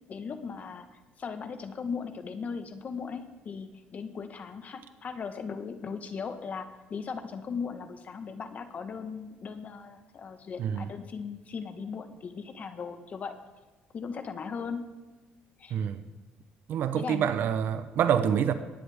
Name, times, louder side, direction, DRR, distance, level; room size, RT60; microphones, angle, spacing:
voice 1, 0.1-13.4 13.9-14.8 15.6-15.8 16.9-17.3, left 5 dB, 45° left, 8 dB, 1.3 m, -38 dB
voice 2, 16.7-18.5, right 8 dB, 65° right, 11 dB, 0.8 m, -26 dB
19.0 x 9.6 x 3.5 m, 1.2 s
cardioid pair, 105°, 4 cm